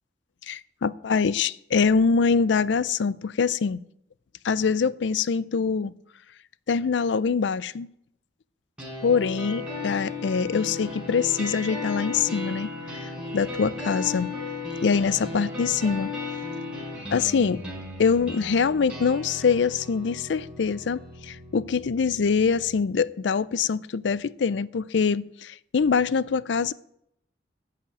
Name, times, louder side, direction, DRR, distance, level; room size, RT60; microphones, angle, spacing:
voice 1, 0.5-3.8 4.4-5.9 6.7-7.9 9.0-14.3 14.8-16.1 17.1-17.6 18.0-26.7, left 5 dB, 85° left, 0.4 m, -24 dB
sound 1, 8.8-22.8, left 3 dB, 5° right, 4.6 m, -35 dB
11.0 x 5.9 x 8.7 m
head